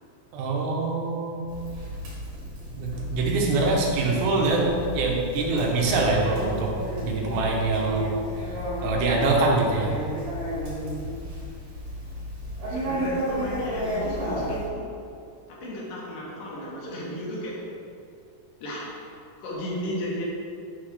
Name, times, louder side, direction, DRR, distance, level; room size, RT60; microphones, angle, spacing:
voice 1, 0.3-1.4 2.8-6.7 7.0-8.1 8.4-8.5 8.8-10.0, right 3 dB, 90° right, -1 dB, 2.8 m, -24 dB
Conversation, 1.5-14.7, equal, 65° right, 3.3 m, -32 dB
voice 2, 12.7-15.0 15.5-17.8 18.6-20.2, equal, 70° left, -4 dB, 2.6 m, -35 dB
7.0 x 3.4 x 5.8 m, 2.4 s
omnidirectional pair, 4.2 m